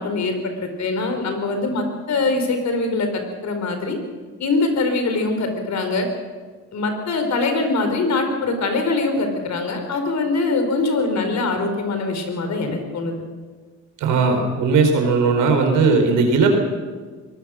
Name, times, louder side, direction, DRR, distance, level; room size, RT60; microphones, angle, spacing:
voice 1, 0.0-4.0 4.4-6.1 6.7-13.1, left 3 dB, 65° left, 6 dB, 4.7 m, -23 dB
voice 2, 14.0-16.5, right 4 dB, 85° right, 4 dB, 4.9 m, -17 dB
23.0 x 19.5 x 6.5 m, 1.5 s
cardioid pair, 90°, 30 cm